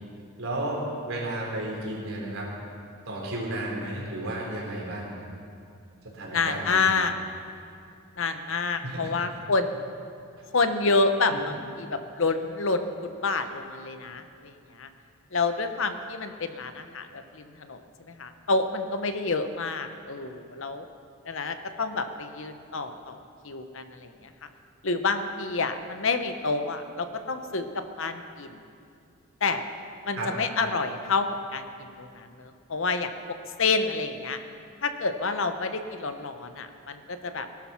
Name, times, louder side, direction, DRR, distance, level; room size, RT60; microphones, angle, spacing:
voice 1, 0.4-2.5 3.1-5.1 6.1-6.9 8.8-9.1 11.3-11.4 30.2-30.3, right 1 dB, 70° right, -3 dB, 4.2 m, -33 dB
voice 2, 6.3-7.1 8.2-9.9 10.5-14.9 15.3-20.9 21.3-24.5 24.8-28.6 29.4-29.7 30.0-33.1 33.6-34.4 34.8-37.5, left 3 dB, 60° left, 8 dB, 0.9 m, -28 dB
19.5 x 12.0 x 5.8 m, 2.4 s
head